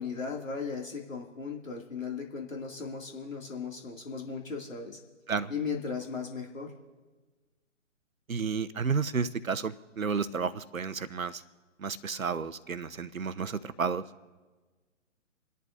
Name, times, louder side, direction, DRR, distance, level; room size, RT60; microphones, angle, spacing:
voice 1, 0.0-5.0 5.5-6.7, left 5 dB, 75° left, 0 dB, 2.4 m, -37 dB
voice 2, 8.3-11.4 11.8-14.0, right 5 dB, 85° right, 13 dB, 0.9 m, -31 dB
28.5 x 11.0 x 2.6 m, 1.3 s
figure-of-eight pair, 140°, 40 cm